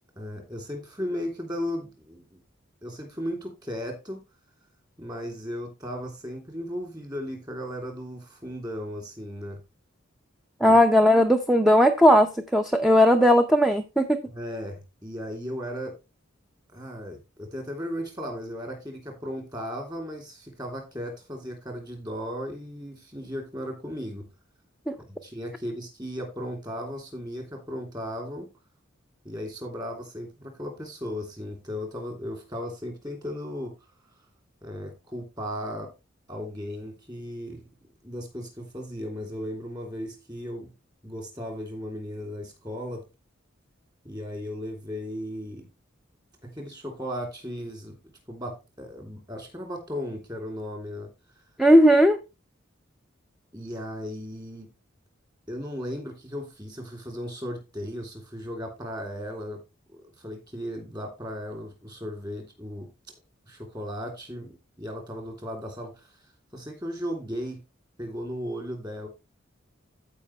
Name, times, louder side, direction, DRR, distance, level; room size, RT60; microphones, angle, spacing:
voice 1, 0.2-2.4 2.8-4.2 5.0-9.6 10.6-10.8 14.3-15.9 16.7-24.2 25.2-28.5 29.2-33.7 34.6-35.9 36.3-37.6 38.0-40.7 41.0-43.0 44.0-45.7 46.4-47.9 48.3-51.1 53.5-54.7 55.5-59.6 59.9-62.9 63.5-66.1 66.5-67.6 68.0-69.1, equal, 20° right, 2.9 m, -36 dB
voice 2, 10.6-14.2 51.6-52.2, equal, ahead, 0.6 m, -17 dB
14.5 x 5.2 x 3.2 m
head